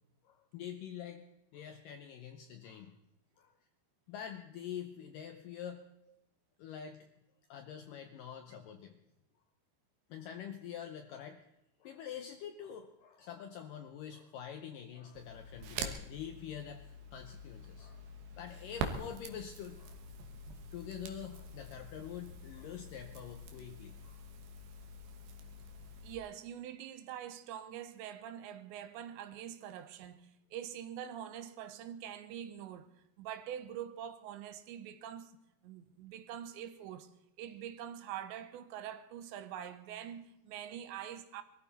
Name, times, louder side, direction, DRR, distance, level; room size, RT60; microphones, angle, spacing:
voice 1, 0.2-1.2 1.5-3.0 3.4-3.5 4.1-5.9 6.6-7.1 7.5-9.0 10.1-11.4 11.8-18.1 18.4-20.0 20.7-24.2, left 9 dB, 90° left, 1.9 m, -46 dB
Crackle, 15.2-26.2, right 3 dB, 65° right, 2.7 m, -45 dB
voice 2, 26.0-32.9 33.2-35.4 35.6-37.1 37.4-41.4, right 10 dB, 80° right, 3.2 m, -44 dB
23.0 x 14.0 x 4.1 m
omnidirectional pair, 5.1 m